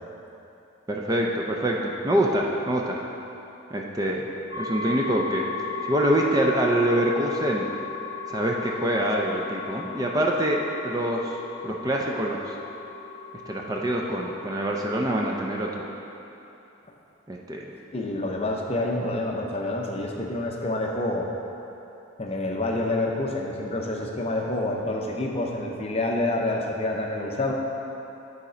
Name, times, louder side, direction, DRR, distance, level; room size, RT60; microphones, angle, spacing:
voice 1, 0.9-3.0 3.7-4.3 4.6-5.5 5.8-7.7 8.3-11.4 11.6-12.6 13.5-15.9 17.3-17.8, right 1 dB, 20° right, -1 dB, 0.4 m, -25 dB
sound 1, 4.5-15.3, left 5 dB, 40° right, 1.7 m, -36 dB
voice 2, 17.9-21.3 22.2-27.5, left 2 dB, 30° left, 0 dB, 0.6 m, -27 dB
9.4 x 4.2 x 5.0 m, 2.9 s
head